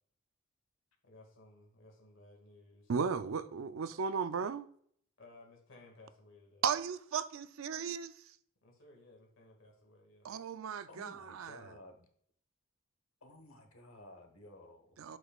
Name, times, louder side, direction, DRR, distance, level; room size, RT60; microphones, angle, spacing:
voice 1, 1.0-2.9 5.2-6.6 8.6-10.4, left 2 dB, 65° left, 2.0 m, -59 dB
voice 2, 2.9-4.7 6.6-8.4 10.2-11.8 15.0-15.2, right 6 dB, 80° right, 0.5 m, -36 dB
voice 3, 10.9-12.1 13.2-15.0, left 1 dB, 85° left, 1.3 m, -54 dB
7.9 x 6.3 x 2.4 m
head